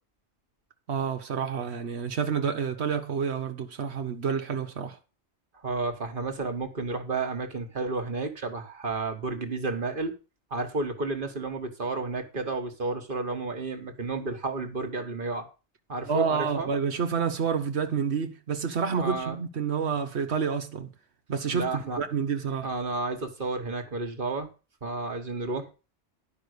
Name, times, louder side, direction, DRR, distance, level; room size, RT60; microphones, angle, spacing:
voice 1, 0.9-5.0 16.0-20.9 21.3-22.7, right 6 dB, 70° right, 1.2 m, -29 dB
voice 2, 5.6-10.1 10.5-15.5 15.9-16.7 19.0-19.4 21.5-22.0 22.6-24.5 24.8-25.7, right 3 dB, 50° right, 1.6 m, -31 dB
11.0 x 5.6 x 6.6 m
omnidirectional pair, 1.2 m